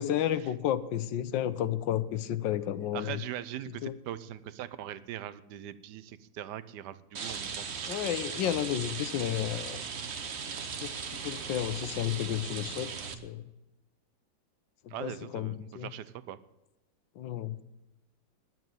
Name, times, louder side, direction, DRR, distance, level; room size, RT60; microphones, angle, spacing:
voice 1, 0.0-3.2 3.8-3.9 7.8-9.8 10.6-12.9 13.2-13.4 14.8-15.9 17.2-17.6, left 11 dB, 80° left, 14 dB, 1.4 m, -32 dB
voice 2, 2.9-7.7 8.3-8.5 14.9-16.4, right 11 dB, 70° right, 15 dB, 1.2 m, -41 dB
Rain, 7.1-13.1, right 6 dB, 45° right, 1.0 m, -38 dB
11.0 x 9.0 x 9.0 m, 0.99 s
omnidirectional pair, 2.0 m